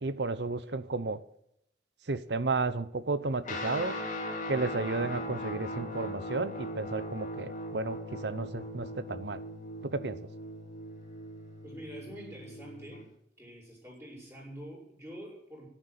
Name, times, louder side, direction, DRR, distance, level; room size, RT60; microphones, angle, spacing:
voice 1, 0.0-1.2 2.1-3.9 4.5-9.4 9.9-10.2, right 3 dB, 70° right, 0.8 m, -32 dB
Guitar, 3.4-13.1, left 1 dB, 45° left, 2.8 m, -39 dB
voice 2, 11.6-13.1 13.4-15.7, equal, 15° right, 6.7 m, -46 dB
11.0 x 10.5 x 8.1 m
head